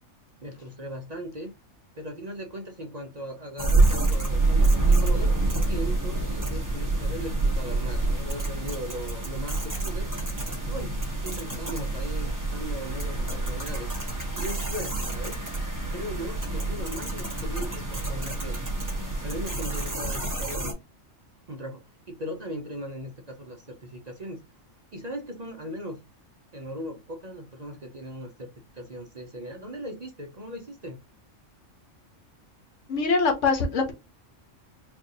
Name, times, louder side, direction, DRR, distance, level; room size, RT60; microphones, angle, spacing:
voice 1, 0.4-1.5 1.9-5.3 5.7-10.3 10.7-13.9 14.3-15.4 15.9-18.6 19.2-20.8 21.5-24.4 24.9-26.0 26.5-28.5 28.7-31.0, equal, 40° right, 0.7 m, -38 dB
sound 1, 3.6-20.7, right 2 dB, 15° right, 1.0 m, -27 dB
voice 2, 32.9-33.9, left 4 dB, 70° left, 1.3 m, -23 dB
4.6 x 2.5 x 2.7 m
omnidirectional pair, 1.3 m